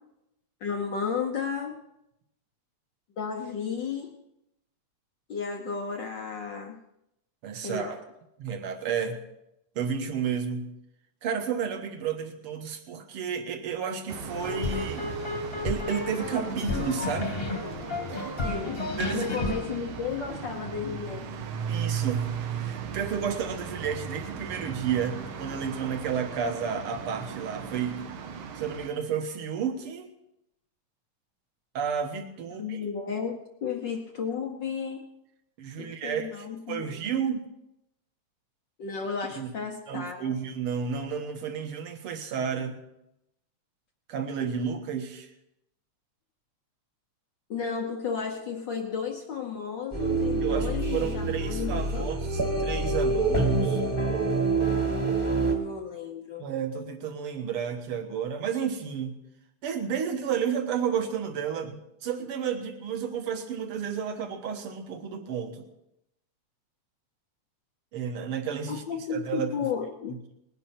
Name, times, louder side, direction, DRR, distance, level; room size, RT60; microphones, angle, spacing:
voice 1, 0.6-1.8 3.2-4.1 5.3-6.8 7.6-8.0 18.4-18.8 19.1-21.3 32.6-35.0 35.8-37.1 38.8-40.3 47.5-52.1 55.4-56.4 68.7-70.2, left 6 dB, 70° left, 3 dB, 1.0 m, -33 dB
voice 2, 7.4-8.0 8.4-9.2 9.8-10.7 11.2-15.1 15.6-17.4 19.0-19.4 21.7-28.1 28.6-30.1 31.7-32.8 35.6-37.4 39.4-39.5 39.9-42.8 44.1-45.3 50.4-53.8 56.4-59.2 59.6-65.7 67.9-68.8 69.1-69.5, right 7 dB, 55° right, 6 dB, 1.9 m, -31 dB
sound 1, 14.1-28.9, right 7 dB, 75° right, 2.5 m, -37 dB
sound 2, 14.4-20.8, left 2 dB, 30° left, 1.1 m, -32 dB
sound 3, 49.9-55.5, right 3 dB, 15° right, 1.1 m, -26 dB
20.0 x 10.5 x 4.4 m, 0.84 s
omnidirectional pair, 3.3 m